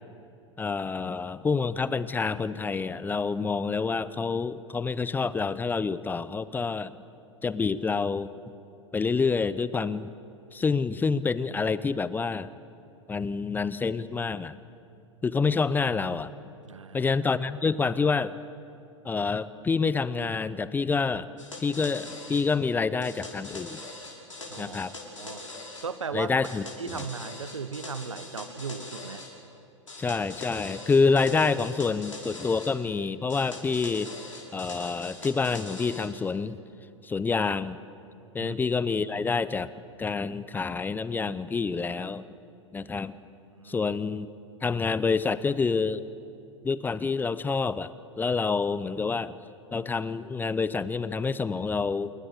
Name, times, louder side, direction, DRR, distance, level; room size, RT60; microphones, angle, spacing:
voice 1, 0.6-7.0 7.4-8.3 8.9-10.1 10.5-12.5 13.1-14.6 15.2-16.3 16.9-18.3 19.0-21.3 21.6-23.8 24.6-25.0 26.1-26.6 26.9-27.0 30.0-34.1 34.5-36.6 37.0-37.8 38.3-39.7 40.0-42.3 42.7-43.2 43.7-44.3 44.6-46.0 46.6-47.9 48.2-49.4 49.7-52.1, left 4 dB, 10° left, 17 dB, 0.7 m, -27 dB
voice 2, 16.6-17.1 24.5-24.8 25.2-25.4 25.8-26.5 26.8-29.3 38.4-38.6 43.4-43.9, right 5 dB, 75° right, 13 dB, 1.4 m, -37 dB
sound 1, 21.4-22.5 23.0-25.9 26.4-29.3 29.9-32.7 33.3-36.1, left 2 dB, 80° left, 6.0 m, -42 dB
28.0 x 22.5 x 8.5 m, 2.6 s
figure-of-eight pair, 95°, 16 cm